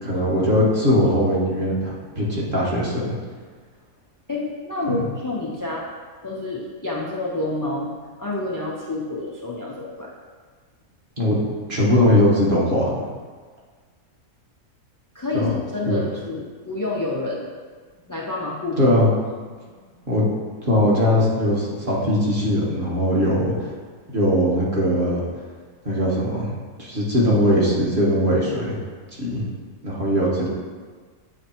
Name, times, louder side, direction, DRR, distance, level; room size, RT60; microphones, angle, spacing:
voice 1, 0.0-3.1 4.9-5.0 11.2-11.4 11.7-12.8 15.3-15.5 15.9-16.0 18.8-19.1 20.1-20.3 20.6-23.5 24.1-25.2 25.8-26.5 26.8-28.8 29.2-29.5 29.8-30.5, left 1 dB, 40° right, -6 dB, 1.5 m, -20 dB
voice 2, 4.3-5.9 6.2-7.9 8.2-10.1 15.1-17.5 18.1-18.9 19.7-19.9 23.2-23.3, left 2 dB, 30° left, -4 dB, 0.4 m, -28 dB
8.8 x 3.4 x 4.4 m, 1.5 s
omnidirectional pair, 1.5 m